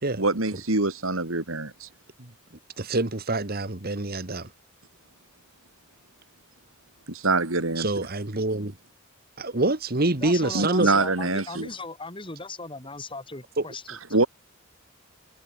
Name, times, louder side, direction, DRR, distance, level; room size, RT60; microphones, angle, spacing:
voice 1, 0.2-1.9 7.1-7.9 10.5-11.7 14.1-14.3, right 3 dB, 75° right, 3.1 m, -24 dB
voice 2, 2.8-4.5 7.8-8.7 9.4-10.9 13.6-13.7, right 2 dB, 45° right, 1.7 m, -26 dB
voice 3, 10.2-14.0, left 3 dB, 25° left, 4.5 m, -37 dB
head